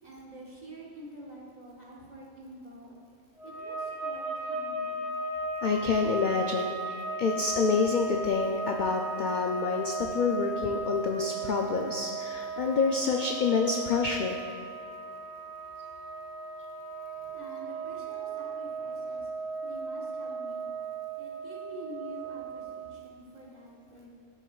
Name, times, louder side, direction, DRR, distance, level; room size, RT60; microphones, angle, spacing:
voice 1, 0.0-3.0 3.4-5.1 17.1-19.3 19.6-20.7 21.2-24.1, right 1 dB, 35° right, -5 dB, 1.5 m, -47 dB
sound 1, 3.4-23.0, right 3 dB, 60° right, 1.8 m, -36 dB
voice 2, 5.6-14.4, left 4 dB, 70° left, 2 dB, 0.4 m, -28 dB
12.5 x 6.4 x 2.3 m, 2.3 s
omnidirectional pair, 1.3 m